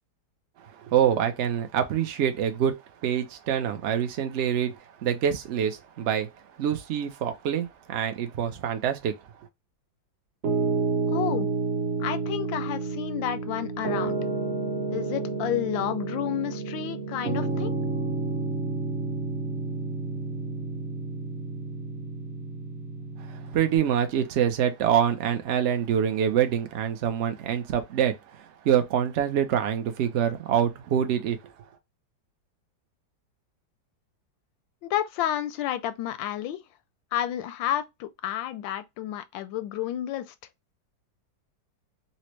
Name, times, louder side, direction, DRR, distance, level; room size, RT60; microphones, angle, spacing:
voice 1, 0.6-2.7 3.0-4.7 5.0-6.3 6.6-9.2 23.2-31.4, right 9 dB, 70° right, 0.6 m, -25 dB
Piano, 10.4-23.8, right 3 dB, 45° right, 1.0 m, -30 dB
voice 2, 11.1-11.5 12.0-14.2 14.9-17.7 34.8-36.6 37.1-40.3, left 11 dB, 85° left, 1.3 m, -30 dB
4.2 x 2.1 x 3.0 m
omnidirectional pair, 2.0 m